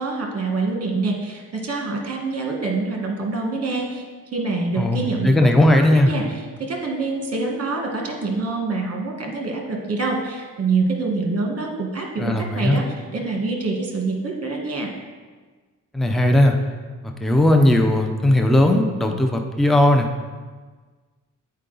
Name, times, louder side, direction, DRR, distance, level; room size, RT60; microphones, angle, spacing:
voice 1, 0.0-4.0 4.3-12.8 13.1-14.9, right 3 dB, 45° right, 1 dB, 1.3 m, -26 dB
voice 2, 4.8-6.1 12.2-12.8 15.9-16.6 17.0-20.1, left 1 dB, ahead, 4 dB, 0.4 m, -17 dB
8.1 x 4.6 x 3.8 m, 1.4 s
wide cardioid pair, 120°, 32 cm